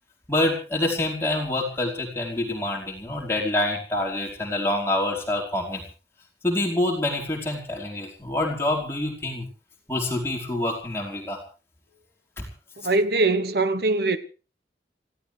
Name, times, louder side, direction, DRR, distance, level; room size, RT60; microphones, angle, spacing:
voice 1, 0.3-5.8 6.4-9.5 9.9-11.4 12.4-12.5, left 1 dB, 15° left, 4.8 m, -26 dB
voice 2, 12.8-14.2, right 3 dB, 65° right, 1.1 m, -22 dB
27.0 x 16.0 x 3.4 m
head